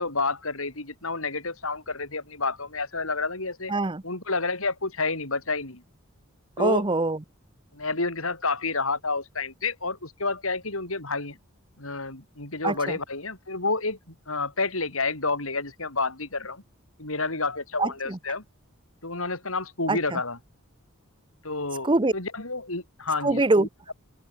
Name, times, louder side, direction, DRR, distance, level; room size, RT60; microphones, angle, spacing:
voice 1, 0.0-3.7 4.0-5.8 6.6-6.8 7.7-11.4 11.8-16.6 17.0-18.4 19.0-20.4 21.4-23.7, left 3 dB, 75° left, 6.7 m, -29 dB
voice 2, 3.7-4.0 6.6-7.2 12.6-13.0 17.8-18.2 19.9-20.2 21.8-22.1 23.2-23.9, right 2 dB, 25° right, 0.8 m, -24 dB
open air
head